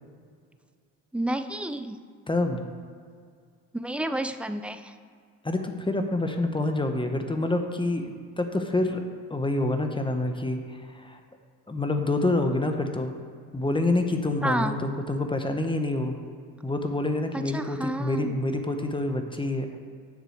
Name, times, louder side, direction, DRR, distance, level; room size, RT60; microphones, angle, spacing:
voice 1, 1.1-2.0 3.8-4.9 14.4-14.8 17.3-18.3, right 1 dB, 5° right, 9 dB, 0.6 m, -30 dB
voice 2, 2.3-2.6 5.4-9.0 9.3-11.2 11.7-13.2 13.5-16.2 16.6-19.7, left 2 dB, 15° left, 5 dB, 1.0 m, -27 dB
7.7 x 6.6 x 6.5 m, 2.1 s
supercardioid pair, 80°, 35 cm